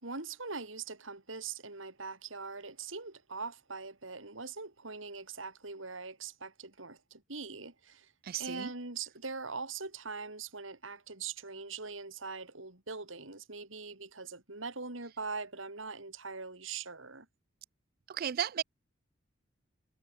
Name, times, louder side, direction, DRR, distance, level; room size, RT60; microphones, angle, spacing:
voice 1, 0.0-8.1 8.4-17.3, right 4 dB, 80° right, 3.7 m, -42 dB
voice 2, 8.2-8.7 18.1-18.6, right 9 dB, 50° right, 0.4 m, -34 dB
head